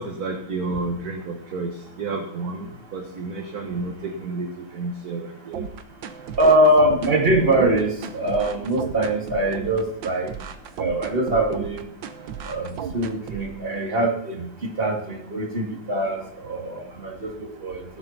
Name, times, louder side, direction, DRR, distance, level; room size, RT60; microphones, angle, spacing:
voice 1, 0.0-1.7 2.0-2.7 2.9-4.5 4.7-5.6, right 3 dB, 50° right, 3 dB, 1.7 m, -30 dB
sound 1, 5.5-13.5, right 7 dB, 70° right, 1.7 m, -34 dB
voice 2, 6.4-10.3 10.8-11.8 12.4-17.8, right 1 dB, 25° right, 0 dB, 2.7 m, -22 dB
16.0 x 8.3 x 6.0 m, 0.73 s
omnidirectional pair, 2.2 m